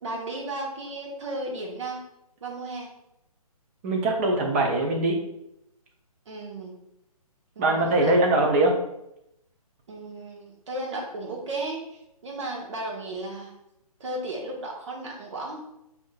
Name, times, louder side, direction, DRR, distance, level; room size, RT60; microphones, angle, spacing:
voice 1, 0.0-2.0 2.4-2.9 6.3-6.8 7.5-8.1 9.9-13.5 14.0-15.7, right 2 dB, 50° right, -1 dB, 1.3 m, -34 dB
voice 2, 3.8-5.2 7.6-8.7, right 2 dB, 25° right, 0 dB, 0.7 m, -22 dB
5.9 x 2.8 x 2.3 m, 0.82 s
figure-of-eight pair, 140°, 20 cm